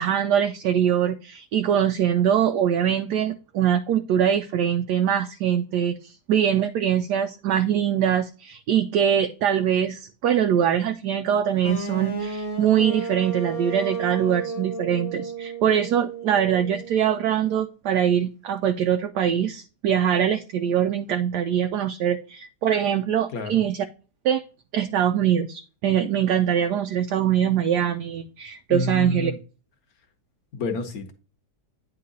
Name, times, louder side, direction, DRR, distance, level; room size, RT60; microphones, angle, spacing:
voice 1, 0.0-23.8 24.2-24.4 24.7-29.3, right 9 dB, 80° right, 1.2 m, -23 dB
sound 1, 11.6-17.5, right 4 dB, 30° left, 0.8 m, -33 dB
voice 2, 23.3-23.6 28.7-29.4 30.5-31.1, left 3 dB, 65° left, 1.5 m, -29 dB
9.3 x 3.7 x 3.9 m
omnidirectional pair, 1.8 m